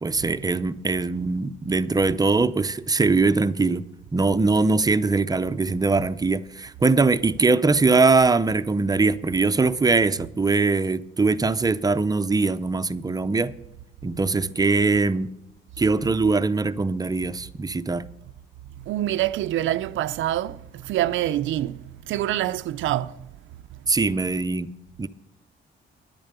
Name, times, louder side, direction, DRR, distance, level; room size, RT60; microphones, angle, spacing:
voice 1, 0.0-13.5 14.0-15.3 15.8-18.1 23.9-25.1, right 3 dB, 20° right, 0.6 m, -22 dB
voice 2, 18.9-20.6 20.8-21.8 22.1-23.1, right 13 dB, 75° right, 0.5 m, -25 dB
10.5 x 8.8 x 6.7 m
cardioid pair, 90°, 20 cm